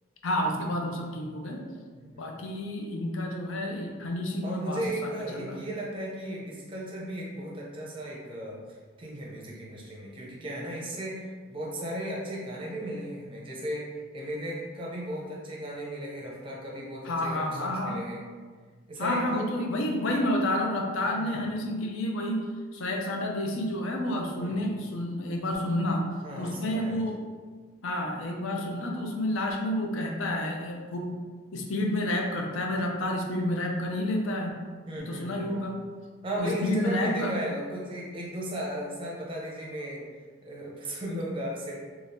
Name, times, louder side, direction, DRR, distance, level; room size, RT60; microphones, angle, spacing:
voice 1, 0.2-1.6 2.2-5.6 17.0-18.0 19.0-22.5 22.7-26.1 26.4-27.2 27.8-31.2 31.5-34.6 35.0-35.8 36.4-37.4, left 1 dB, 70° left, 1 dB, 0.5 m, -30 dB
voice 2, 1.9-2.2 4.4-8.6 9.0-18.2 18.9-19.5 21.2-21.5 24.4-24.6 26.2-27.1 34.9-35.6 36.2-40.0 40.4-41.8, right 1 dB, 25° right, -4 dB, 0.5 m, -35 dB
2.6 x 2.3 x 3.4 m, 1.5 s
head